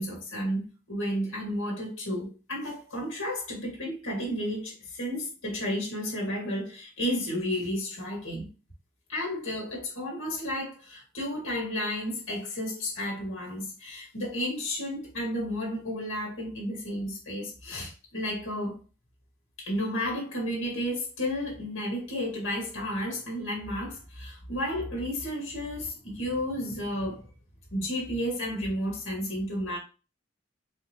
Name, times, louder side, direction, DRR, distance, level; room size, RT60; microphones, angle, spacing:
voice 1, 0.0-8.5 9.1-18.8 19.6-27.3 27.7-29.8, equal, 90° left, 1.6 m, -32 dB
4.0 x 2.8 x 2.8 m
head